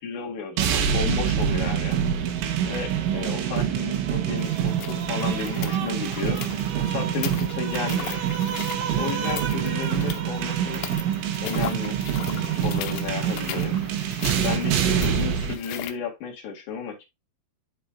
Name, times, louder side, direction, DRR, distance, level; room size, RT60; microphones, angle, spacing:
voice 1, 0.0-2.0 2.6-6.4 6.8-8.2 8.9-10.8 11.4-12.0 12.3-13.8 14.4-17.0, left 6 dB, 50° left, 0 dB, 2.6 m, -33 dB
sound 1, 0.6-15.6, right 9 dB, 80° right, 3.5 m, -26 dB
sound 2, 4.4-15.9, left 12 dB, 80° left, 3.1 m, -39 dB
12.0 x 4.4 x 2.4 m, 0.22 s
omnidirectional pair, 5.6 m